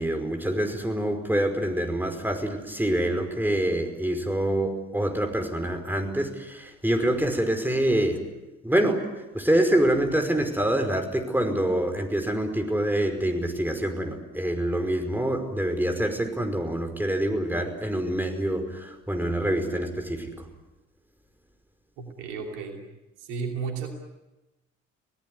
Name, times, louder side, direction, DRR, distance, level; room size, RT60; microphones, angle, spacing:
voice 1, 0.0-8.2 8.6-20.5, right 1 dB, 5° right, 5 dB, 5.2 m, -26 dB
voice 2, 22.0-22.8 23.2-23.9, right 5 dB, 75° right, 3 dB, 3.0 m, -33 dB
26.0 x 18.0 x 9.7 m, 1.0 s
figure-of-eight pair, 40°, 36 cm